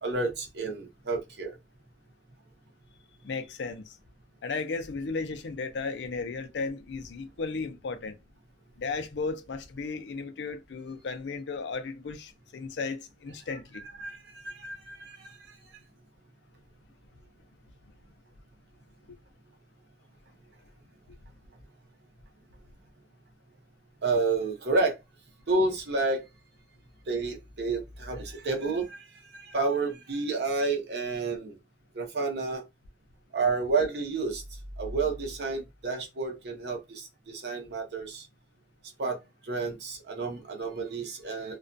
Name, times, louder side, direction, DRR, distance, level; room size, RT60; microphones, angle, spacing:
voice 1, 0.0-1.6 13.7-15.6 24.0-25.0 25.5-26.3 27.1-31.6 31.9-32.6 33.3-34.4 34.8-38.3 39.0-39.2 39.4-41.6, right 3 dB, 65° right, 0.7 m, -30 dB
voice 2, 3.2-4.0 4.4-8.2 8.8-13.8 21.1-21.2, left 4 dB, 80° left, 0.4 m, -35 dB
2.3 x 2.2 x 2.5 m
head